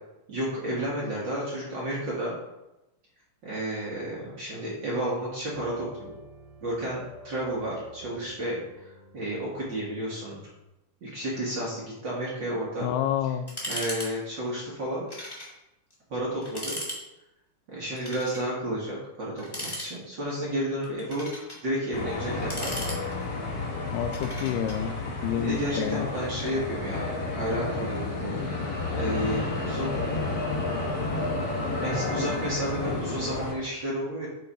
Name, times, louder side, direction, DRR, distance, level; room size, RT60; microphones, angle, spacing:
voice 1, 0.3-2.3 3.4-6.1 6.6-8.6 9.1-10.4 11.0-12.9 13.7-15.0 16.1-16.8 17.7-22.9 25.4-30.0 31.8-34.3, right 1 dB, 45° right, -5 dB, 1.7 m, -32 dB
sound 1, 5.5-10.7, right 2 dB, 75° right, 2.7 m, -49 dB
voice 2, 12.8-13.5 23.9-26.1, left 10 dB, 85° left, 11 dB, 2.1 m, -29 dB
sound 2, 13.5-14.1 14.3-14.5 15.1-15.5 15.9-16.0 16.4-17.0 17.9-18.5 19.4-20.2 20.8-21.6 22.3-23.4 24.1-24.8, equal, 15° left, 0.8 m, -37 dB
sound 3, 21.9-33.5, left 3 dB, 70° left, 0.8 m, -31 dB
9.0 x 3.9 x 4.2 m, 0.95 s
omnidirectional pair, 3.7 m